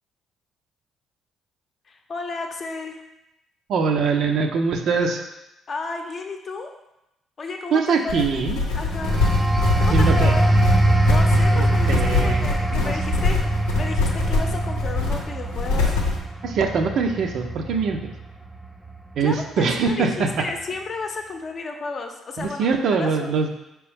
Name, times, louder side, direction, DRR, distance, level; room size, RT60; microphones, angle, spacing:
voice 1, 1.9-3.0 5.7-6.7 7.4-8.5 8.7-9.2 9.8-10.5 11.0-13.4 13.8-16.0 19.2-23.4, left 3 dB, 50° left, 3 dB, 0.6 m, -33 dB
voice 2, 3.7-5.2 7.7-8.6 9.7-10.3 11.5-12.9 16.4-18.1 19.2-20.4 22.4-23.5, right 5 dB, 65° right, 4 dB, 0.5 m, -23 dB
sound 1, 8.1-16.2, left 4 dB, 85° left, 0.7 m, -24 dB
sound 2, 8.9-19.3 19.7-20.0, right 1 dB, 10° right, 0.5 m, -22 dB
4.5 x 3.0 x 3.4 m, 0.89 s
hypercardioid pair, 55°, 0 cm